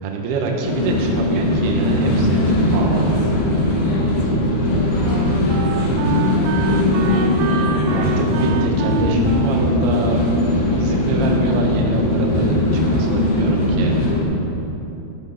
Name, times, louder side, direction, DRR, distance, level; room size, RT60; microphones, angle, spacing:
voice 1, 0.0-3.1 7.6-10.2 10.5-14.0, right 3 dB, 70° right, 0 dB, 2.8 m, -25 dB
sound 1, 0.6-14.2, left 1 dB, 50° left, 3.8 m, -19 dB
voice 2, 3.9-6.1, left 1 dB, 70° left, -3 dB, 4.2 m, -37 dB
Wind instrument woodwind instrument, 4.5-11.3, right 9 dB, 85° right, 2.9 m, -29 dB
13.0 x 11.0 x 5.4 m, 3.0 s
omnidirectional pair, 5.9 m